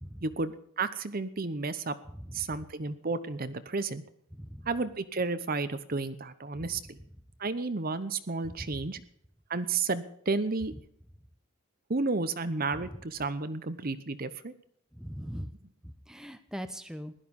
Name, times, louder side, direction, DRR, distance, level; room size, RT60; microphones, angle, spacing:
voice 1, 0.2-2.0 2.3-4.0 4.7-7.0 7.4-9.0 9.5-10.7 11.9-14.5, right 3 dB, 40° right, 12 dB, 0.8 m, -32 dB
voice 2, 15.0-15.5 16.1-17.1, equal, 5° right, 9 dB, 0.8 m, -40 dB
16.0 x 12.0 x 5.4 m, 0.67 s
head